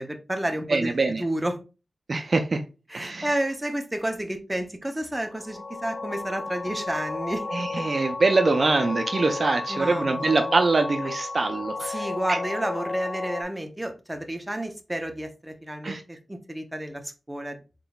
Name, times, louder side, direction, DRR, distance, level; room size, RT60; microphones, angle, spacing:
voice 1, 0.0-1.6 2.9-7.7 9.7-10.5 11.8-17.6, right 1 dB, 10° right, 0.6 m, -31 dB
voice 2, 0.7-1.2 2.1-2.6 2.9-3.3 7.5-12.0 12.3-12.4 15.8-16.0, right 3 dB, 50° right, 0.4 m, -24 dB
sound 1, 5.3-13.4, left 3 dB, 40° left, 0.4 m, -33 dB
4.0 x 3.7 x 2.3 m
wide cardioid pair, 90°, 0 cm